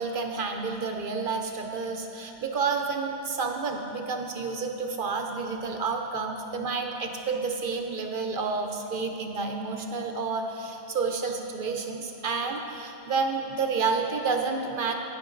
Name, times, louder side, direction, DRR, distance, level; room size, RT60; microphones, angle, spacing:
voice 1, 0.0-14.9, right 4 dB, 55° right, 4 dB, 0.7 m, -30 dB
10.5 x 9.3 x 3.9 m, 3.0 s
omnidirectional pair, 1.2 m